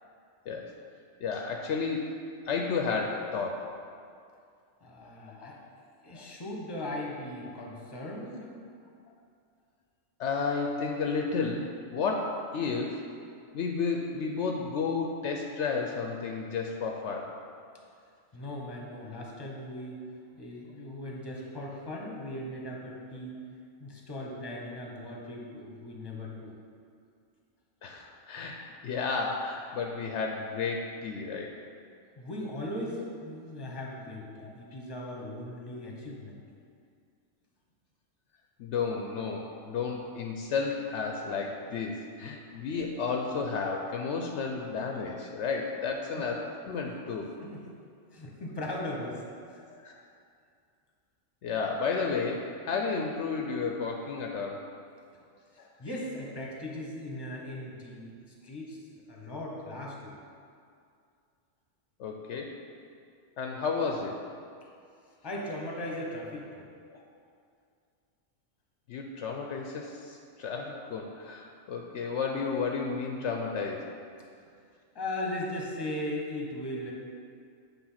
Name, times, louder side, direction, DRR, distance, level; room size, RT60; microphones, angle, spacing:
voice 1, 0.5-0.8 1.2-3.8 6.1-6.3 10.2-13.0 13.5-17.3 27.8-31.5 34.4-34.5 38.6-47.3 49.6-50.0 51.4-54.8 55.6-55.7 62.0-62.6 63.4-64.2 66.9-67.0 68.9-73.9, left 4 dB, 70° left, 1 dB, 0.8 m, -32 dB
voice 2, 4.8-5.6 6.0-8.5 18.3-20.0 20.3-23.4 23.8-26.6 32.2-36.4 46.1-46.3 47.4-47.6 48.1-49.6 55.1-55.2 55.8-58.1 58.4-58.8 59.1-60.1 65.2-66.7 74.4-74.5 74.9-76.9, left 1 dB, 20° left, -2 dB, 1.0 m, -38 dB
8.7 x 3.4 x 5.7 m, 2.3 s
omnidirectional pair, 1.3 m